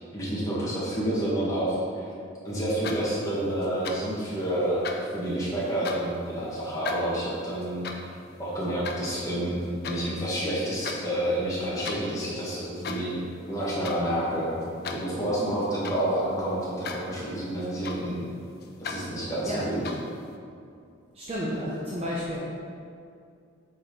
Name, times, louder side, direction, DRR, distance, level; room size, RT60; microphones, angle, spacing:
voice 1, 0.1-2.0 2.4-4.9 5.1-7.9 8.4-13.2 13.5-18.2 18.8-19.8, right 1 dB, 15° left, -8 dB, 1.7 m, -29 dB
sound 1, 2.6-3.3 3.6-4.2 4.6-6.2 6.6-10.0 10.4-11.0 11.3-12.1 12.6-13.2 13.4-14.0 14.4-16.2 16.6-17.1 17.4-18.3 18.6-19.0 19.6-20.2, left 5 dB, 50° left, 0.5 m, -38 dB
voice 2, 21.1-22.4, equal, 30° right, -7 dB, 0.8 m, -31 dB
8.1 x 4.3 x 4.0 m, 2.4 s
head